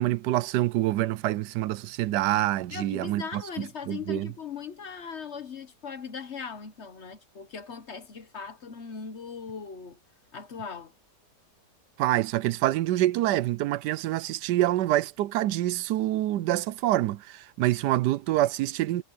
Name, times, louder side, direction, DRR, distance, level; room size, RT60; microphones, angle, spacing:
voice 1, 0.0-4.3 12.0-19.0, right 15 dB, 80° right, 1.2 m, -26 dB
voice 2, 2.7-10.0 10.3-10.9, left 6 dB, 45° left, 1.1 m, -39 dB
omnidirectional pair, 1.8 m